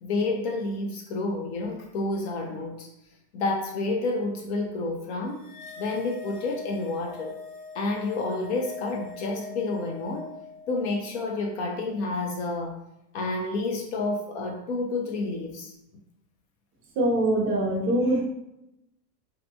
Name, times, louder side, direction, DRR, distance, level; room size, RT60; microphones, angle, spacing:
voice 1, 0.0-2.9 3.3-5.5 5.8-7.4 7.7-10.3 10.7-12.8 13.1-15.7, left 2 dB, 45° left, 2 dB, 0.4 m, -29 dB
sound 1, 5.4-11.9, left 5 dB, 85° left, 0.8 m, -43 dB
voice 2, 17.0-18.2, right 1 dB, 30° right, -2 dB, 0.5 m, -23 dB
2.7 x 2.1 x 2.6 m, 0.84 s
supercardioid pair, 130°, 49 cm